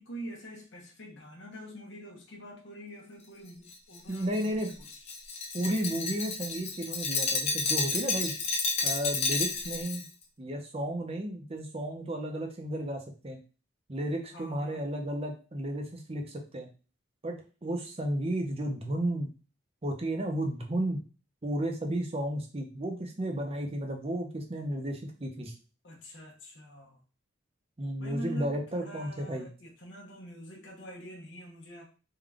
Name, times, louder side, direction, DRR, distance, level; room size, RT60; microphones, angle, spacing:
voice 1, 0.0-4.9 14.3-14.8 25.8-27.0 28.0-31.8, right 1 dB, 60° left, -1 dB, 0.9 m, -45 dB
Glass, 3.7-10.0, left 4 dB, 35° left, 0.6 m, -31 dB
voice 2, 4.1-4.7 5.5-8.4 8.8-10.0 10.4-13.4 13.9-16.7 17.2-19.3 19.8-21.0 21.4-25.5 27.8-29.5, right 1 dB, 30° right, 2 dB, 0.6 m, -33 dB
3.7 x 2.3 x 3.4 m, 0.34 s
head